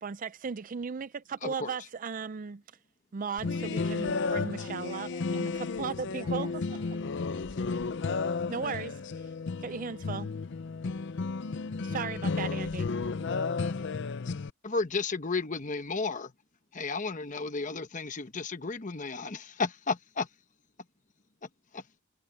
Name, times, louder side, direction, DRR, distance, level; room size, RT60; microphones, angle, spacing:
voice 1, 0.0-2.6 3.1-6.5 8.5-9.3 9.6-10.3 11.8-12.9, right 5 dB, 40° right, 0.4 m, -36 dB
voice 2, 1.4-1.7 14.6-16.3 16.7-20.3 21.4-21.8, left 4 dB, 40° left, 1.0 m, -33 dB
sound 1, 3.4-14.5, left 4 dB, 60° left, 0.5 m, -33 dB
voice 3, 4.6-5.5 6.1-7.1 7.5-7.9, right 2 dB, 20° right, 1.7 m, -54 dB
head